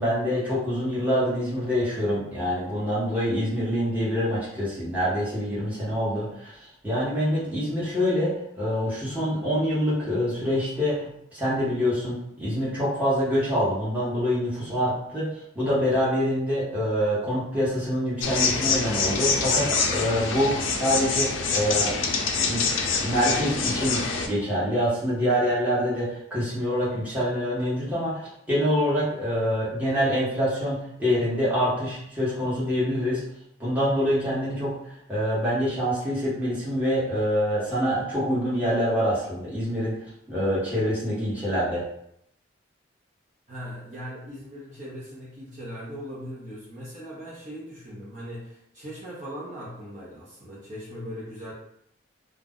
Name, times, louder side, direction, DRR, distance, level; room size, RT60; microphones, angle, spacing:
voice 1, 0.0-22.1 22.4-22.6 23.0-33.2 33.6-34.8 35.1-40.0 40.3-41.9, equal, 10° right, -9 dB, 1.0 m, -26 dB
sound 1, 18.2-24.3, left 4 dB, 80° left, 0.4 m, -25 dB
voice 2, 43.5-51.5, equal, 40° right, -7 dB, 0.7 m, -39 dB
2.4 x 2.1 x 3.6 m, 0.73 s
head